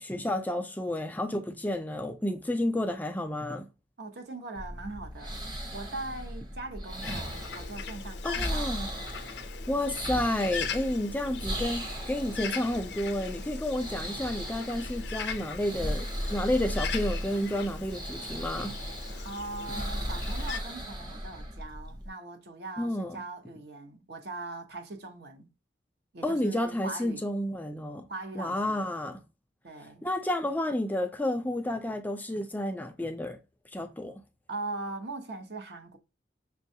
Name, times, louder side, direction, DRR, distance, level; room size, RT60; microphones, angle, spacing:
voice 1, 0.0-3.7 8.2-8.9 9.7-18.7 22.8-23.2 26.2-28.1 28.3-29.2 30.0-33.4 33.7-34.2, left 1 dB, 10° left, 0.3 m, -31 dB
voice 2, 4.0-5.4 5.7-8.7 9.8-10.0 19.2-25.5 26.1-27.2 28.1-28.9 29.6-30.0 34.5-36.0, right 3 dB, 65° right, 0.8 m, -40 dB
sound 1, 4.5-22.1, equal, 25° right, 0.8 m, -37 dB
Bird, 7.0-20.6, left 7 dB, 70° left, 0.5 m, -40 dB
6.1 x 2.3 x 2.6 m
head